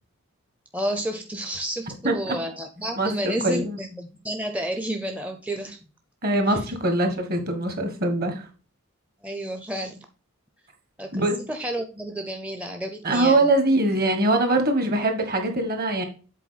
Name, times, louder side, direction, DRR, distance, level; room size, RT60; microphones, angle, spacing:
voice 1, 0.7-5.8 6.5-6.7 9.2-10.1 11.0-13.5, right 1 dB, 5° right, 5 dB, 0.5 m, -31 dB
voice 2, 2.0-2.3 3.0-3.8 6.2-8.5 11.1-11.4 13.0-16.0, right 1 dB, 45° right, 6 dB, 1.5 m, -23 dB
7.4 x 4.2 x 4.1 m, 0.36 s
head